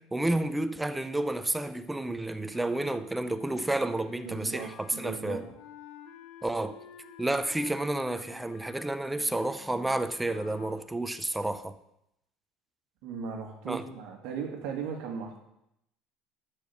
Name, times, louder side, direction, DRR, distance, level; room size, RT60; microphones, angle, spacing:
voice 1, 0.0-5.5 6.4-6.8 7.2-11.7 13.7-13.8, right 1 dB, 5° right, 0.5 m, -30 dB
Wind instrument woodwind instrument, 2.5-10.8, left 7 dB, 70° left, 1.5 m, -51 dB
voice 2, 4.2-5.4 13.0-15.4, right 6 dB, 60° right, 1.9 m, -37 dB
12.0 x 4.7 x 6.9 m
cardioid pair, 165°, 0 cm